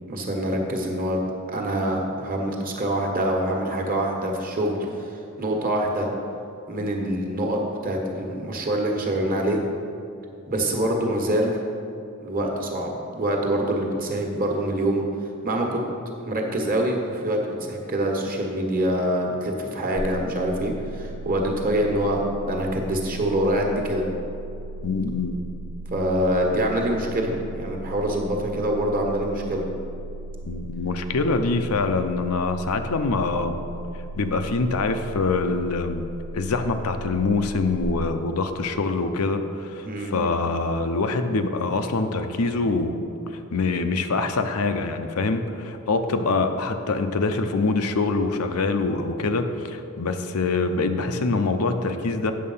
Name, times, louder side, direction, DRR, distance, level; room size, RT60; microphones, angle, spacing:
voice 1, 0.1-1.2 1.5-5.1 5.4-6.1 6.7-9.6 10.5-11.6 12.2-15.0 15.4-15.8 16.2-24.0 25.9-29.6 39.8-40.2, right 1 dB, 40° right, 1 dB, 1.3 m, -25 dB
sound 1, 20.0-37.8, right 2 dB, 65° right, 0.8 m, -37 dB
voice 2, 24.8-25.3 30.5-33.6 34.2-36.0 36.3-43.0 43.3-52.3, left 3 dB, 80° left, 7 dB, 0.6 m, -24 dB
8.6 x 6.5 x 5.5 m, 2.6 s
head